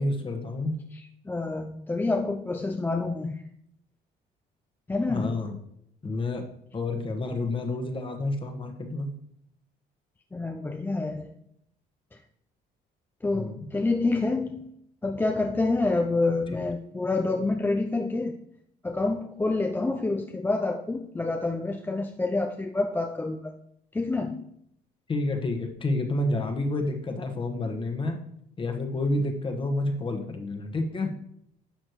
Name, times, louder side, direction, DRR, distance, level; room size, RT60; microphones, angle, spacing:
voice 1, 0.0-0.8 5.1-5.6 6.0-6.4 6.7-9.1 13.3-13.7 25.1-28.2 28.6-31.1, left 2 dB, 30° left, 4 dB, 1.4 m, -29 dB
voice 2, 0.9-3.4 4.9-5.4 10.3-11.3 13.2-14.7 15.0-18.3 18.8-23.5 23.9-24.4, left 3 dB, 10° left, 3 dB, 0.5 m, -28 dB
11.5 x 6.3 x 3.1 m, 0.72 s
cardioid pair, 110°, 17 cm